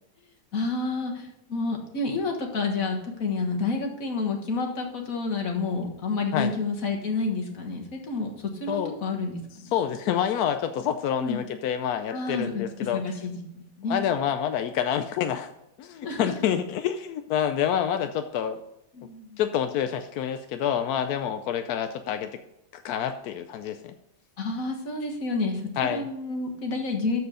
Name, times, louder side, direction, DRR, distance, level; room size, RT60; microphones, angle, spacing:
voice 1, 0.5-9.7 11.2-11.4 12.1-12.6 12.9-14.0 16.0-16.3 18.9-19.4 24.4-27.2, left 3 dB, 50° left, 1 dB, 1.9 m, -29 dB
voice 2, 9.7-13.0 13.9-15.5 15.8-18.6 19.4-22.4 22.7-23.9 25.8-26.1, left 9 dB, 70° left, 8 dB, 0.9 m, -27 dB
13.0 x 4.7 x 5.0 m, 0.86 s
omnidirectional pair, 2.0 m